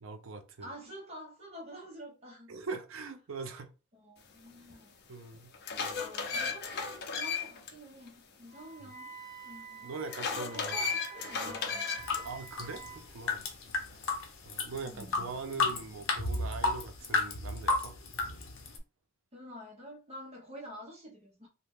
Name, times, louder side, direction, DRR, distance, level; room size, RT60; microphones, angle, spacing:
voice 1, 0.0-0.7 2.5-3.7 5.1-5.5 8.8-8.9 9.8-10.9 11.5-11.6 12.2-13.5 13.9-14.0 14.4-17.9, right 4 dB, 85° right, 0.5 m, -42 dB
voice 2, 0.6-2.6 3.9-4.9 6.0-9.1 9.4-9.9 10.3-12.3 14.8-15.3 19.3-21.5, equal, 30° right, 0.8 m, -48 dB
sound 1, 4.7-4.8 5.3-7.7 8.1-8.2 10.1-12.2, left 5 dB, 55° left, 0.6 m, -35 dB
Wind instrument woodwind instrument, 8.5-13.1, right 7 dB, 5° left, 0.7 m, -49 dB
sound 2, 12.0-18.8, left 3 dB, 90° left, 0.7 m, -33 dB
2.8 x 2.1 x 3.4 m
head